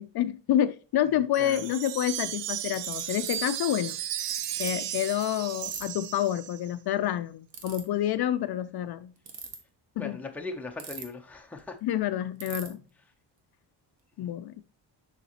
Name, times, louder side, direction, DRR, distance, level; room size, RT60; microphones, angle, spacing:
voice 1, 0.0-4.0 4.6-9.1 10.0-10.2 11.8-12.8 14.2-14.6, left 11 dB, 60° left, 0.5 m, -28 dB
Wind chime, 1.3-6.7, right 11 dB, 70° right, 0.6 m, -35 dB
Ratchet pawl, 2.7-3.3 4.3-4.7 5.6-5.8 7.5-7.8 9.2-9.6 10.8-11.3 11.6-11.7 11.9-12.0 12.4-12.7, right 6 dB, 85° right, 1.6 m, -39 dB
voice 2, 10.0-11.8, left 3 dB, 5° left, 0.6 m, -39 dB
6.9 x 5.8 x 2.9 m
wide cardioid pair, 175°, 44 cm